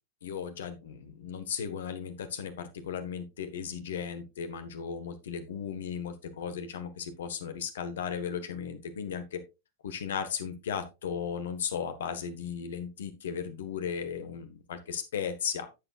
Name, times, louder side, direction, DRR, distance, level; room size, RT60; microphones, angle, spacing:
voice 1, 0.2-9.4 9.8-15.7, left 7 dB, 60° left, 10 dB, 1.3 m, -36 dB
11.5 x 7.7 x 2.4 m, 0.26 s
figure-of-eight pair, 90°, 0 cm